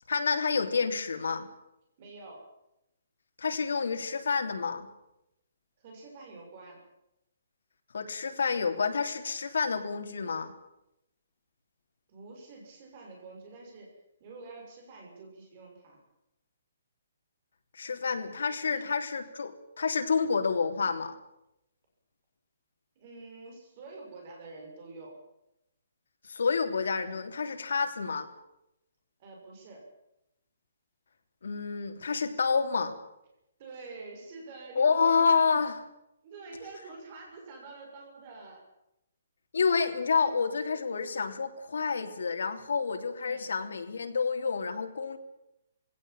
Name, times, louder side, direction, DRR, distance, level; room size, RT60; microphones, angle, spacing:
voice 1, 0.1-1.5 3.4-4.9 7.9-10.5 17.7-21.1 26.3-28.3 31.4-32.9 34.7-35.8 39.5-45.2, left 5 dB, 85° left, 5 dB, 3.2 m, -28 dB
voice 2, 2.0-2.5 5.8-6.9 12.1-16.0 18.6-18.9 22.9-25.2 29.2-29.9 33.6-35.5 36.2-38.6 43.2-43.5, right 3 dB, 30° right, 1 dB, 6.6 m, -47 dB
20.5 x 17.0 x 8.9 m, 0.86 s
hypercardioid pair, 175°, 0 cm